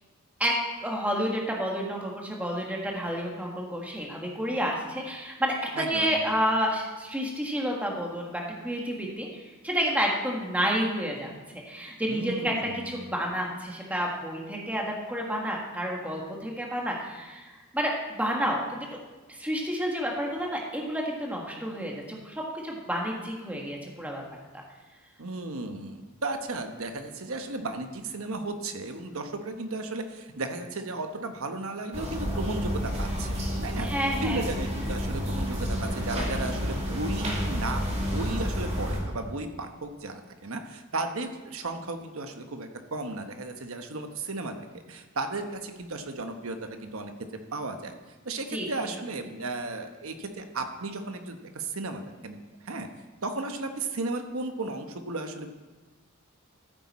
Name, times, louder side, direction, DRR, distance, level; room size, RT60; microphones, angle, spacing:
voice 1, 0.8-12.5 12.8-17.9 18.2-18.8 19.3-24.2 33.7-34.4 48.5-48.9, equal, 5° right, -1 dB, 1.6 m, -30 dB
voice 2, 5.7-6.1 12.1-13.0 25.2-33.4 33.6-33.9 34.2-44.6 44.9-47.1 47.5-47.9 48.2-52.9 53.2-55.5, right 2 dB, 70° right, 6 dB, 1.1 m, -34 dB
sound 1, 31.9-39.0, equal, 30° right, 2.3 m, -30 dB
14.0 x 8.1 x 4.2 m, 1.2 s
head